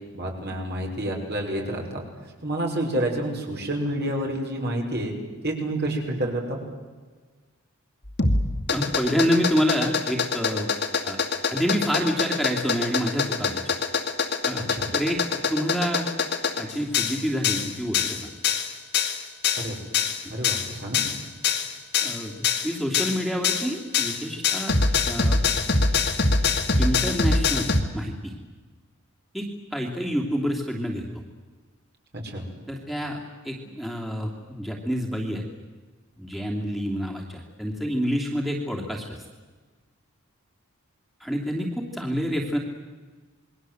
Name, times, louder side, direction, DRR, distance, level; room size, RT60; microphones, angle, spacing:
voice 1, 0.1-2.0 2.4-5.1 5.4-6.6 14.6-14.9 19.6-19.8 20.3-21.0 32.1-32.4, right 1 dB, 50° right, 1 dB, 6.0 m, -29 dB
sound 1, 8.1-27.8, left 4 dB, 55° left, 2.5 m, -24 dB
voice 2, 8.7-10.7 11.0-11.2 11.5-13.8 14.4-14.7 14.9-15.2 15.5-16.0 16.6-18.3 21.1-21.2 22.0-24.7 25.1-25.4 26.8-28.3 29.3-31.0 32.7-33.2 33.4-35.4 36.2-39.2 41.2-42.6, equal, ahead, -1 dB, 2.9 m, -28 dB
28.0 x 22.0 x 8.0 m, 1.4 s
head